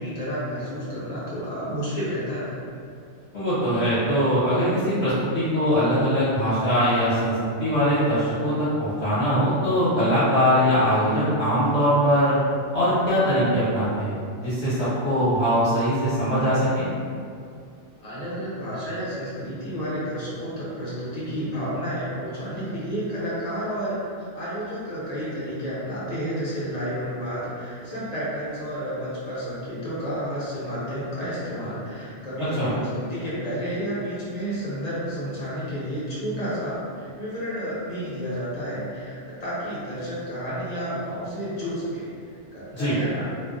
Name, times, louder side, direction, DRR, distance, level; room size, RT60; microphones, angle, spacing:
voice 1, 0.0-2.5 18.0-24.0 24.3-43.3, equal, 40° left, -10 dB, 0.7 m, -31 dB
voice 2, 3.3-7.3 7.6-12.4 12.7-16.9 32.6-32.7 42.7-42.9, equal, 55° left, -13 dB, 1.0 m, -22 dB
2.5 x 2.2 x 2.3 m, 2.3 s
omnidirectional pair, 1.3 m